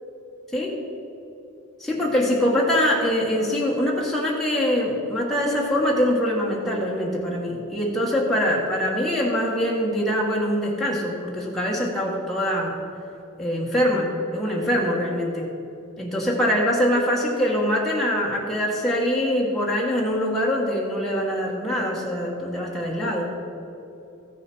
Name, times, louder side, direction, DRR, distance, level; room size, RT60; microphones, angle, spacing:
voice 1, 1.8-12.8 13.4-15.5 16.0-23.3, equal, ahead, -4 dB, 1.4 m, -23 dB
14.5 x 6.9 x 6.1 m, 2.9 s
head